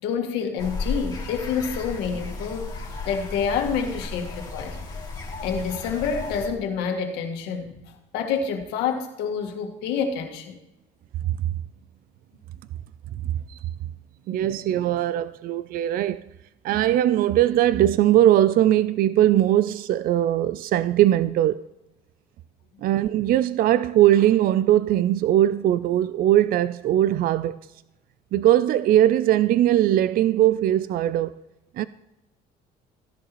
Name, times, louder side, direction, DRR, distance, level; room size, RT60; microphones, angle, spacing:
voice 1, 0.0-4.8 5.4-7.7 8.1-10.6 14.4-14.5, left 6 dB, 90° left, 1.7 m, -28 dB
sound 1, 0.6-6.5, left 3 dB, 25° left, 2.6 m, -34 dB
voice 2, 13.2-13.7 14.3-16.2 16.6-21.7 22.8-27.6 28.3-31.3 31.7-31.9, right 12 dB, 60° right, 0.4 m, -20 dB
15.0 x 11.0 x 3.1 m
cardioid pair, 110°, 17 cm